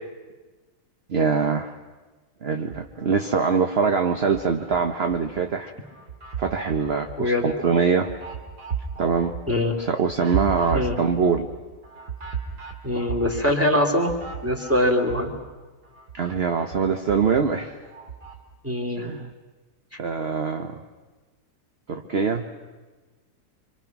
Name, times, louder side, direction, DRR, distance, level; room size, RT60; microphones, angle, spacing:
voice 1, 1.1-1.7 2.4-5.7 6.4-8.1 9.0-9.4 9.8-11.5 16.1-17.7 19.0-19.3 20.0-20.8 21.9-22.5, right 5 dB, 45° right, 5 dB, 1.1 m, -23 dB
sound 1, 2.6-3.4 3.8-5.4 5.8-15.5 15.8-18.4, right 6 dB, 80° right, 3.0 m, -36 dB
voice 2, 7.2-7.5 9.5-9.7 10.7-11.0 12.8-14.1 14.4-15.3 18.6-19.1, left 1 dB, 10° right, 1 dB, 2.8 m, -22 dB
26.0 x 26.0 x 6.0 m, 1.3 s
omnidirectional pair, 1.7 m